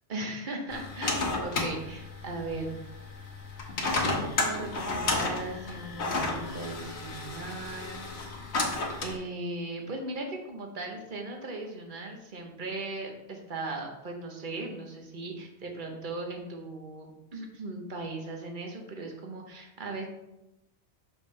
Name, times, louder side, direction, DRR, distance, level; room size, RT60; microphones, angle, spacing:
voice 1, 0.1-2.8 4.0-8.7 9.0-20.1, right 2 dB, 50° right, 2 dB, 1.1 m, -38 dB
sound 1, 0.7-9.2, left 3 dB, 85° left, 1.3 m, -32 dB
6.2 x 5.2 x 3.2 m, 0.93 s
omnidirectional pair, 1.1 m